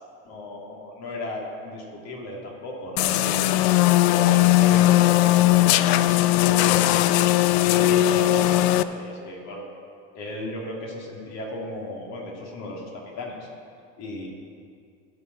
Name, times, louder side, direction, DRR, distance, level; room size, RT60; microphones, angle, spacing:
voice 1, 0.2-3.5 4.1-7.3 7.7-9.7 10.1-13.5 14.0-14.3, left 1 dB, 55° left, -1 dB, 2.5 m, -35 dB
sound 1, 3.0-8.8, left 15 dB, 90° left, 0.5 m, -19 dB
16.5 x 6.9 x 4.0 m, 2.3 s
supercardioid pair, 115°, 32 cm